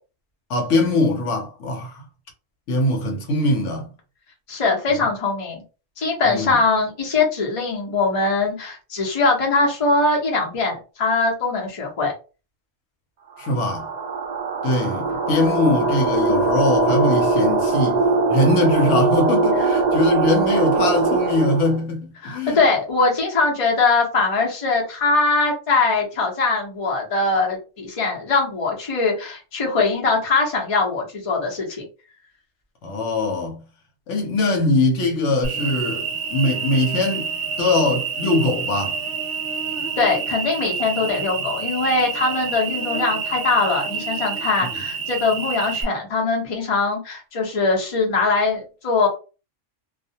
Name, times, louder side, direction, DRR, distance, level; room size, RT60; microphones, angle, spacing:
voice 1, 0.5-2.0 2.7-3.9 4.9-5.0 6.3-6.6 13.4-13.9 14.6-18.0 18.3-22.6 32.8-33.6 34.1-37.3 37.6-39.0, left 2 dB, 70° left, 0.9 m, -22 dB
voice 2, 4.5-5.6 6.0-12.1 19.6-19.7 22.2-31.8 40.0-49.1, left 3 dB, 30° left, 0.7 m, -21 dB
sound 1, 13.4-21.8, right 3 dB, 85° right, 0.3 m, -21 dB
Cricket, 35.4-45.8, right 6 dB, 55° right, 0.9 m, -28 dB
2.3 x 2.1 x 2.7 m
omnidirectional pair, 1.3 m